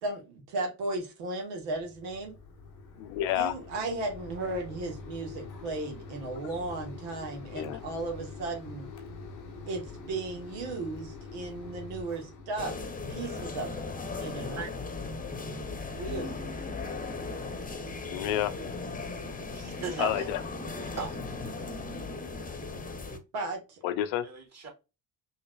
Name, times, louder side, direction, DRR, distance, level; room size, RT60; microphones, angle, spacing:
voice 1, 0.0-2.4 3.3-8.9 9.7-12.7 13.1-13.8 14.2-14.7 15.9-16.4 23.3-23.8, right 2 dB, 70° right, 1.7 m, -35 dB
Mechanisms, 1.6-12.6, left 4 dB, 85° left, 1.0 m, -45 dB
voice 2, 3.0-3.5 7.5-7.8 18.1-18.5 20.0-20.4 23.8-24.3, left 12 dB, 65° left, 0.7 m, -29 dB
sound 1, 12.6-23.2, left 3 dB, 15° left, 1.0 m, -37 dB
voice 3, 14.6-15.0 19.5-20.3 20.8-21.2 24.2-24.7, right 4 dB, 30° right, 2.4 m, -37 dB
5.6 x 3.0 x 2.4 m
hypercardioid pair, 50°, 49 cm